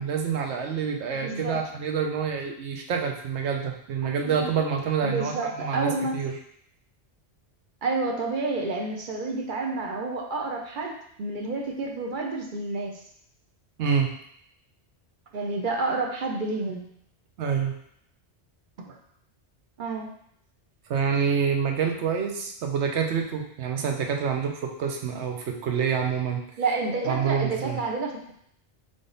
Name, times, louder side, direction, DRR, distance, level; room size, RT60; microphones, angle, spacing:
voice 1, 0.0-6.3 13.8-14.1 17.4-17.7 20.9-26.4 27.1-27.8, right 6 dB, 85° right, 3 dB, 1.0 m, -27 dB
voice 2, 1.1-1.7 4.2-4.5 5.0-6.1 7.8-13.0 15.3-16.8 18.9-19.0 19.8-20.1 26.6-28.3, right 3 dB, 55° right, 1 dB, 0.8 m, -29 dB
3.7 x 3.5 x 3.9 m, 0.70 s
omnidirectional pair, 1.1 m